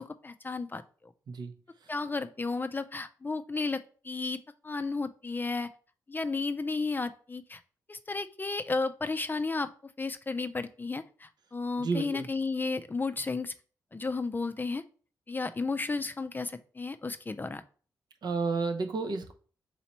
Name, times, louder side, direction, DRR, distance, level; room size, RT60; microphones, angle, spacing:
voice 1, 0.0-1.1 1.9-5.7 6.1-7.6 7.9-9.7 10.0-13.5 13.9-14.8 15.3-17.6, left 3 dB, 25° left, 10 dB, 0.4 m, -33 dB
voice 2, 11.8-12.3 18.2-19.3, right 4 dB, 65° right, 5 dB, 0.7 m, -31 dB
4.1 x 3.0 x 4.2 m, 0.41 s
cardioid pair, 55°, 8 cm